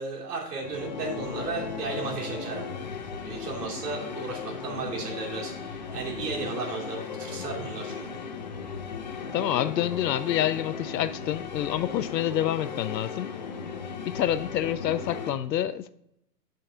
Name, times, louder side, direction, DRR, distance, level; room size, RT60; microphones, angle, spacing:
voice 1, 0.0-2.7 3.2-8.2, right 3 dB, 70° right, 2.9 m, -34 dB
sound 1, 0.6-15.3, left 5 dB, 30° left, 0.4 m, -36 dB
voice 2, 9.3-13.3 14.0-15.9, left 11 dB, 85° left, 0.6 m, -27 dB
9.5 x 5.3 x 3.7 m
hypercardioid pair, 145°, 49 cm